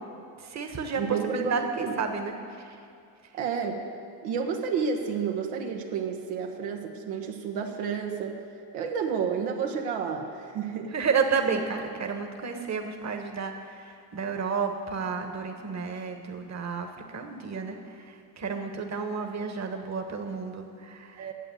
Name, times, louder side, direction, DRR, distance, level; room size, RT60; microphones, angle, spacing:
voice 1, 0.4-2.8 10.9-17.8 18.0-21.3, right 5 dB, 35° right, 5 dB, 1.4 m, -31 dB
voice 2, 1.0-2.0 3.3-3.8 4.2-8.4 8.7-10.9 21.2-21.3, right 6 dB, 75° right, 2 dB, 1.3 m, -30 dB
9.1 x 7.7 x 9.1 m, 2.4 s
hypercardioid pair, 70°, 50 cm